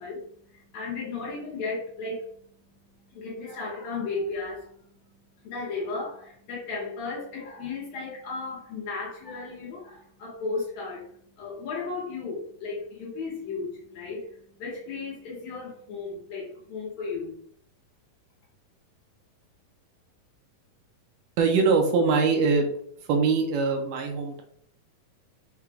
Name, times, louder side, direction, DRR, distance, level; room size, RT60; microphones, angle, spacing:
voice 1, 0.0-2.4 3.1-4.9 5.4-11.1 11.4-17.4, left 4 dB, 70° left, -4 dB, 1.8 m, -35 dB
voice 2, 21.4-22.7 23.0-24.4, right 4 dB, 80° right, 3 dB, 2.1 m, -22 dB
5.9 x 2.3 x 3.3 m, 0.65 s
omnidirectional pair, 3.9 m